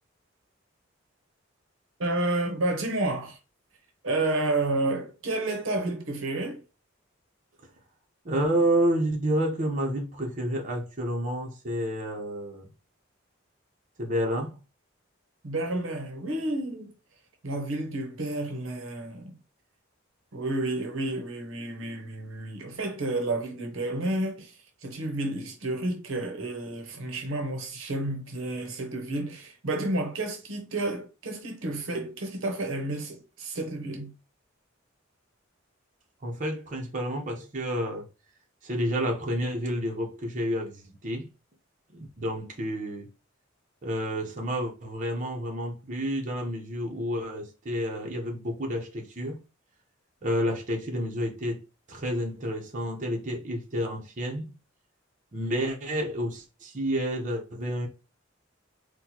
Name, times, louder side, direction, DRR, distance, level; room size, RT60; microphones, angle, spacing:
voice 1, 2.0-3.4 4.0-6.6 15.4-16.9 17.4-19.4 20.3-34.1, right 2 dB, 80° right, 0.8 m, -30 dB
voice 2, 8.2-12.7 14.0-14.6 36.2-38.1 38.6-41.3 41.9-43.1 43.8-49.4 50.2-51.6 51.9-54.5 55.3-57.9, equal, 40° right, 0.8 m, -30 dB
4.2 x 2.2 x 2.8 m
head